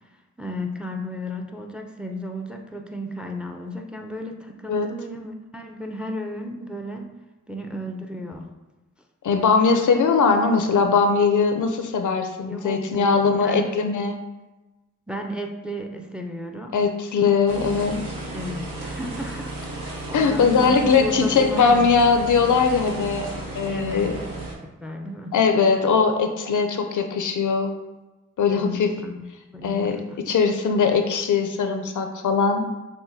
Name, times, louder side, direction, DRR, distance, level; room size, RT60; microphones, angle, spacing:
voice 1, 0.4-7.1 7.5-8.5 12.4-13.7 15.1-16.7 18.3-22.0 23.7-24.4 24.8-25.3 28.5-30.2, left 1 dB, 5° right, 3 dB, 0.4 m, -34 dB
voice 2, 9.2-14.2 16.7-18.0 19.8-24.1 25.3-27.7 28.4-28.9 29.6-30.0 30.3-32.7, left 5 dB, 65° left, 6 dB, 0.5 m, -20 dB
sound 1, 17.5-24.5, right 2 dB, 80° right, 0.8 m, -34 dB
5.9 x 2.2 x 2.6 m, 1.1 s
cardioid pair, 50°, 33 cm